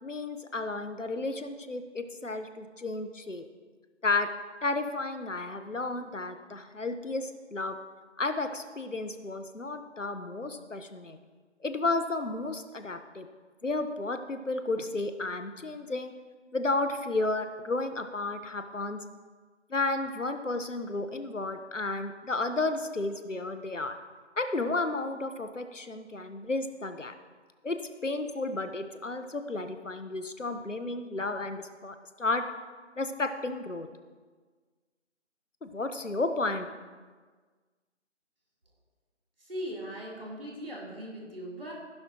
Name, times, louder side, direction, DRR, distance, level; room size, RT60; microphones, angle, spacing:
voice 1, 0.0-3.4 4.0-4.3 4.6-7.8 8.2-11.2 11.6-13.3 13.6-16.1 16.5-19.0 19.7-24.0 24.4-27.1 27.6-32.4 33.0-33.9 35.6-36.7, left 2 dB, 80° left, 8 dB, 1.2 m, -32 dB
voice 2, 39.5-41.7, equal, 50° right, -4 dB, 3.6 m, -39 dB
15.5 x 11.5 x 3.0 m, 1.4 s
figure-of-eight pair, 170°, 37 cm